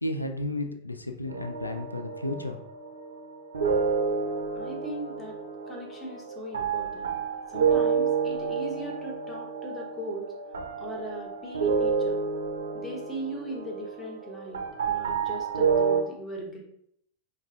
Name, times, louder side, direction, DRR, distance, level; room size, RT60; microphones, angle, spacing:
voice 1, 0.0-2.6, left 1 dB, 85° left, 6 dB, 0.4 m, -33 dB
sound 1, 1.3-16.0, right 5 dB, 70° right, 0.6 m, -29 dB
voice 2, 4.5-5.4 5.7-7.2 7.5-10.3 10.8-12.2 12.7-16.6, right 1 dB, 15° left, 0 dB, 1.0 m, -39 dB
5.3 x 2.3 x 2.4 m, 0.70 s
figure-of-eight pair, 90°, 0 cm